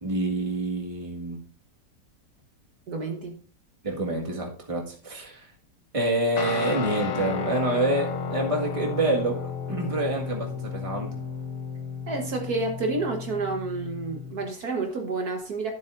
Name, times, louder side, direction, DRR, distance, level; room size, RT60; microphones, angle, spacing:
voice 1, 0.0-1.4 3.8-5.5 5.9-11.1, right 2 dB, 20° right, -1 dB, 1.7 m, -27 dB
voice 2, 2.9-3.4 12.1-15.7, right 3 dB, 60° right, 3 dB, 1.7 m, -29 dB
Guitar, 6.4-14.5, left 5 dB, 65° left, 1.6 m, -33 dB
12.5 x 7.5 x 2.6 m, 0.40 s
omnidirectional pair, 1.9 m